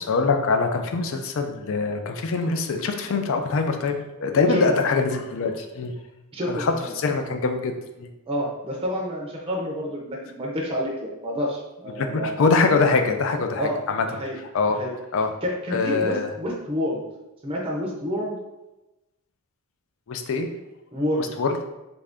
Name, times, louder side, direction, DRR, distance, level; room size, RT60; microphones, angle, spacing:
voice 1, 0.0-5.9 6.5-8.1 12.0-14.0 14.5-14.8 15.1-15.3 15.7-16.3 20.1-20.5 21.2-21.6, left 4 dB, 60° left, 6 dB, 0.4 m, -23 dB
voice 2, 6.3-6.9 8.3-12.4 13.6-13.8 14.1-14.4 14.7-14.9 15.4-17.0 17.4-18.4 20.9-21.3, equal, 25° right, -2 dB, 0.5 m, -28 dB
3.2 x 2.6 x 3.4 m, 1.0 s
head